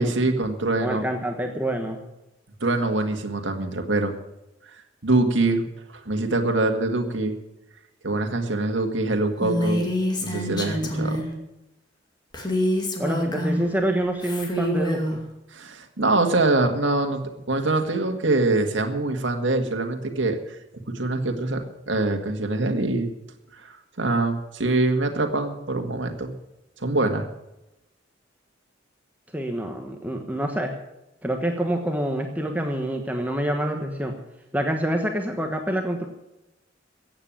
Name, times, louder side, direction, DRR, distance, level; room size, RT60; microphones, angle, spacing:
voice 1, 0.0-1.1 2.6-4.1 5.0-5.6 5.9-7.4 8.0-9.9 10.2-11.2 15.5-17.2 17.5-20.4 20.9-23.1 23.6-26.3 26.8-27.3, right 2 dB, 75° right, 4 dB, 1.9 m, -24 dB
voice 2, 0.8-2.0 13.0-15.2 29.3-30.7 31.2-34.1 34.5-36.1, right 1 dB, 10° right, 3 dB, 1.2 m, -26 dB
Female speech woman speaking, 9.4-11.3 12.3-13.7 14.2-15.2, equal, 25° left, 2.3 m, -26 dB
14.5 x 8.9 x 8.8 m, 0.93 s
head